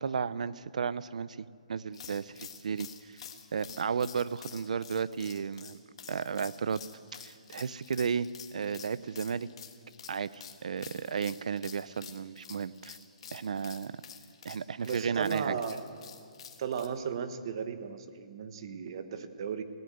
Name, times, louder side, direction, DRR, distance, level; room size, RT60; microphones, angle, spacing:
voice 1, 0.0-3.2 3.5-5.8 6.1-6.8 7.1-8.3 8.5-9.5 10.1-13.0 13.3-14.0 14.4-15.5, right 6 dB, 65° right, 18 dB, 0.6 m, -33 dB
sound 1, 1.9-16.9, left 8 dB, 45° left, 1.7 m, -49 dB
voice 2, 14.8-15.8 16.6-19.6, right 7 dB, 40° right, 9 dB, 1.2 m, -35 dB
20.5 x 17.0 x 8.0 m, 2.3 s
hypercardioid pair, 170°, 4 cm